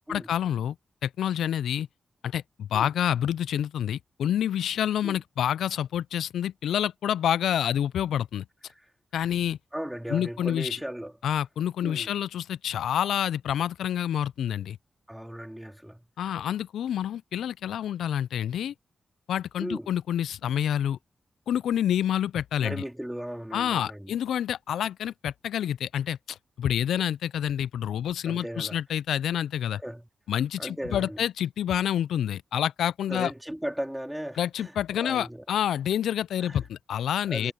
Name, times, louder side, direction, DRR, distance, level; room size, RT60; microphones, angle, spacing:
voice 1, 0.1-0.8 1.0-1.9 2.2-8.4 9.1-9.6 10.1-10.8 11.2-14.8 16.2-18.7 19.3-21.0 21.5-22.8 23.5-29.8 30.3-33.3 34.4-37.5, left 10 dB, 85° left, 0.3 m, -28 dB
voice 2, 9.7-11.1 11.8-12.1 15.1-16.0 19.6-19.9 22.6-24.1 28.3-28.8 29.8-30.0 30.6-31.2 33.1-34.7 35.0-35.4 36.4-36.6 37.3-37.5, equal, 5° right, 3.6 m, -36 dB
supercardioid pair, 40°, 0 cm